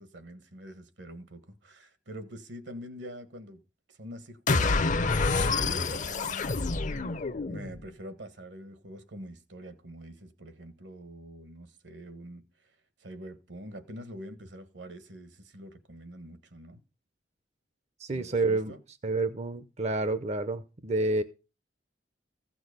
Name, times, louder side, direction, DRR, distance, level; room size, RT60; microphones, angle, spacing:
voice 1, 0.0-3.6 3.9-6.7 7.5-12.7 13.0-16.8 18.1-18.8, equal, 70° right, 1.7 m, -45 dB
sound 1, 4.5-7.8, left 3 dB, 45° left, 0.7 m, -27 dB
voice 2, 18.0-18.7 19.0-21.2, right 2 dB, 40° right, 0.7 m, -29 dB
15.0 x 6.2 x 6.7 m
head